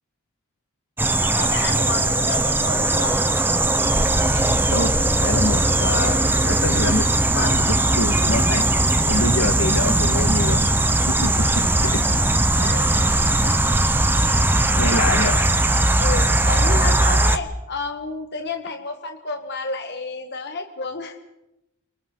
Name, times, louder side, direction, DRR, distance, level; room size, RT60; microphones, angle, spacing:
sound 1, 1.0-17.4, right 2 dB, 10° right, 0.8 m, -20 dB
voice 1, 1.1-3.2 11.8-12.2 12.5-13.7 14.1-15.4 16.0-21.2, left 3 dB, 50° left, 4 dB, 1.5 m, -31 dB
sound 2, 3.8-17.1, left 1 dB, 70° right, 2.6 m, -27 dB
voice 2, 4.6-4.9 5.2-7.1 7.3-8.7 9.1-10.6 11.1-12.0 14.8-15.5, left 2 dB, 70° left, 7 dB, 1.8 m, -26 dB
29.0 x 24.0 x 3.9 m, 0.92 s
head